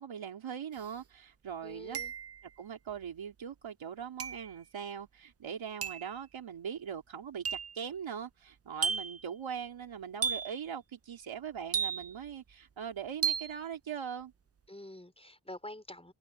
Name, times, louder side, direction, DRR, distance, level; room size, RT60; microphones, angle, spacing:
voice 1, 0.0-2.0 2.6-14.3, right 7 dB, 85° right, 3.3 m, -41 dB
sound 1, 0.8-0.9 1.9-2.5 4.2-4.5 5.8-6.1 7.4-7.8 8.8-9.2 10.2-10.6 11.7-12.3 13.2-13.6, right 6 dB, 30° right, 0.6 m, -34 dB
voice 2, 1.6-2.1 14.7-16.1, left 1 dB, 15° left, 5.0 m, -47 dB
cardioid pair, 50°, 46 cm